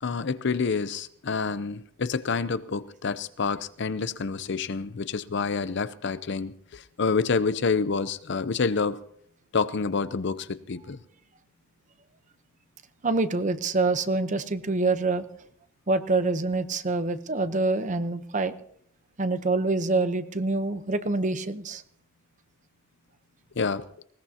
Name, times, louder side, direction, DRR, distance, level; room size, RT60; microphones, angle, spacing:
voice 1, 0.0-9.0 9.5-11.0 23.6-23.9, left 4 dB, 55° left, 14 dB, 0.6 m, -28 dB
voice 2, 13.0-15.2 15.9-18.5 19.2-21.8, right 3 dB, 35° right, 11 dB, 0.8 m, -26 dB
20.0 x 19.5 x 2.8 m, 0.65 s
head